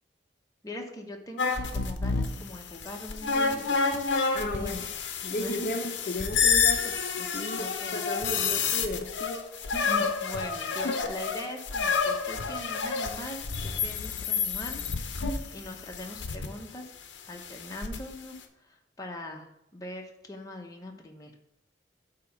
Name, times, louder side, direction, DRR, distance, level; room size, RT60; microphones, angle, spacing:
voice 1, 0.6-4.1 4.4-4.8 5.4-5.7 7.6-8.0 9.7-14.8 15.1-16.9 17.3-21.3, left 1 dB, 20° left, 1 dB, 0.8 m, -41 dB
sound 1, 1.4-16.5 17.4-18.0, left 5 dB, 80° left, 0.7 m, -29 dB
voice 2, 4.3-4.8 5.2-9.4 10.8-11.0, left 1 dB, 50° left, 3 dB, 0.6 m, -34 dB
8.3 x 2.9 x 5.8 m, 0.81 s
head